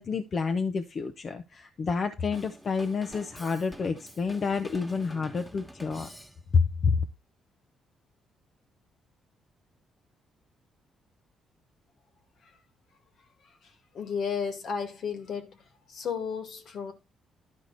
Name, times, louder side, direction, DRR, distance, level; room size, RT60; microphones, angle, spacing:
voice 1, 0.0-6.1 6.5-7.0, left 5 dB, 45° left, 1.0 m, -29 dB
Drum kit / Drum, 2.3-6.7, equal, 10° left, 1.8 m, -47 dB
voice 2, 13.6-15.6 15.9-16.9, left 6 dB, 65° left, 2.1 m, -33 dB
11.5 x 4.9 x 4.0 m
cardioid pair, 90°, 0 cm